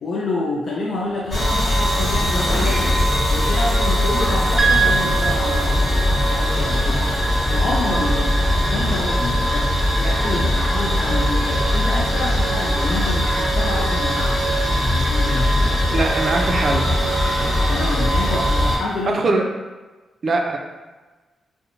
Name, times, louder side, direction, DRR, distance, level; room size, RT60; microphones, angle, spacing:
voice 1, 0.0-3.0 3.3-7.1 7.5-8.4 8.7-14.5 14.7-15.5 17.7-19.5, left 2 dB, 65° left, -4 dB, 0.4 m, -28 dB
Thunder / Rain, 0.9-17.6, left 1 dB, 85° left, 0.8 m, -41 dB
sound 1, 1.3-18.8, equal, 45° left, 1.2 m, -20 dB
sound 2, 4.6-18.9, right 4 dB, 20° right, 0.7 m, -29 dB
voice 2, 15.9-17.0 19.1-19.5 20.2-20.6, right 3 dB, 60° right, 3 dB, 0.4 m, -22 dB
2.5 x 2.0 x 2.9 m, 1.2 s
supercardioid pair, 50°, 0 cm